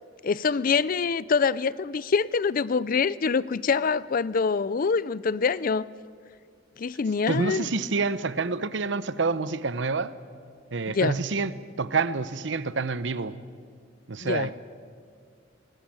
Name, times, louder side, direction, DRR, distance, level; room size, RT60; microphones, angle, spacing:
voice 1, 0.2-5.9 6.8-7.7 10.9-11.1 14.2-14.5, left 5 dB, 50° left, 0.5 m, -25 dB
voice 2, 7.3-10.1 10.7-13.4 14.1-14.6, right 4 dB, 70° right, 0.8 m, -28 dB
20.0 x 19.0 x 8.8 m
head